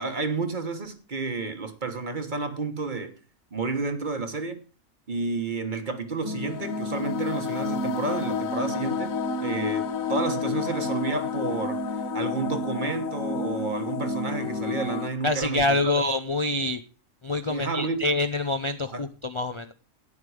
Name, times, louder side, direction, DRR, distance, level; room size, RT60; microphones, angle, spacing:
voice 1, 0.0-3.2 3.5-4.6 5.1-9.1 9.4-15.9 17.5-18.1 18.9-19.0, right 3 dB, 35° right, 1.3 m, -31 dB
sound 1, 6.2-15.1, left 4 dB, 90° left, 1.4 m, -30 dB
voice 2, 15.2-16.8 17.2-19.7, left 2 dB, 35° left, 0.4 m, -26 dB
12.0 x 9.4 x 4.8 m
omnidirectional pair, 1.4 m